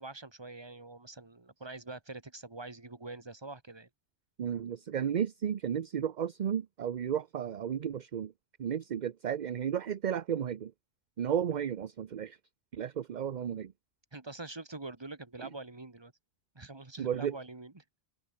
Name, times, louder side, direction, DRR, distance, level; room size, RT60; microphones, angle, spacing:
voice 1, 0.0-3.9 14.1-16.1 16.6-17.8, right 2 dB, 25° right, 1.7 m, -45 dB
voice 2, 4.4-8.3 8.6-10.7 11.2-12.4 12.7-13.7 15.4-15.5 17.0-17.4, right 9 dB, 50° right, 0.7 m, -33 dB
omnidirectional pair, 1.1 m